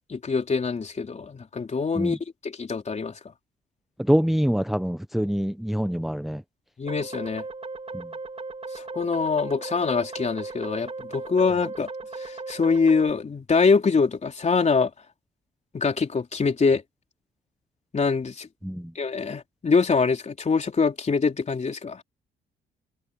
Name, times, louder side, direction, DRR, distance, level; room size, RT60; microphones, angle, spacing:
voice 1, 0.1-2.2 2.4-3.3 6.8-7.4 8.7-11.9 12.2-14.9 15.7-16.8 17.9-18.5 19.0-22.0, left 4 dB, 35° left, 3.9 m, -24 dB
voice 2, 4.0-6.4 7.9-8.1 18.6-18.9, equal, ahead, 0.8 m, -25 dB
sound 1, 6.9-13.1, right 3 dB, 30° right, 4.1 m, -37 dB
open air
cardioid pair, 90°, 20 cm